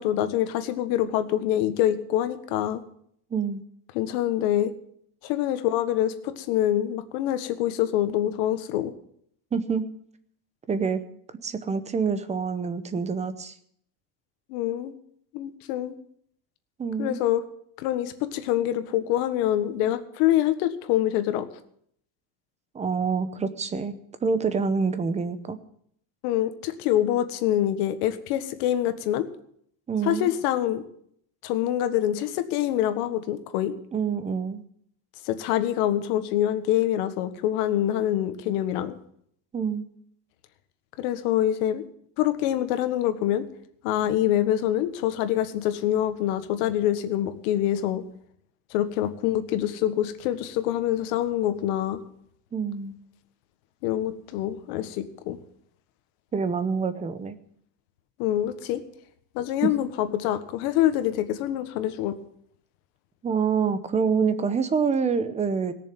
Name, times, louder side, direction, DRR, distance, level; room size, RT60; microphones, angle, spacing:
voice 1, 0.0-2.8 3.9-4.7 5.2-8.9 14.5-14.9 15.3-15.9 17.0-17.4 17.8-21.5 26.2-29.3 30.0-30.8 31.4-33.8 35.2-39.0 41.0-41.8 42.2-43.5 43.8-48.0 48.7-52.0 53.8-55.4 58.2-58.8 59.3-62.2, left 12 dB, 65° left, 10 dB, 1.6 m, -25 dB
voice 2, 3.3-3.6 9.5-9.8 10.7-11.0 11.4-13.5 16.8-17.2 22.7-25.6 29.9-30.3 33.9-34.6 39.5-39.9 52.5-52.9 56.3-57.3 59.6-59.7 63.2-65.7, right 5 dB, 15° right, 12 dB, 0.8 m, -26 dB
18.0 x 6.9 x 9.0 m, 0.67 s
cardioid pair, 155°, 49 cm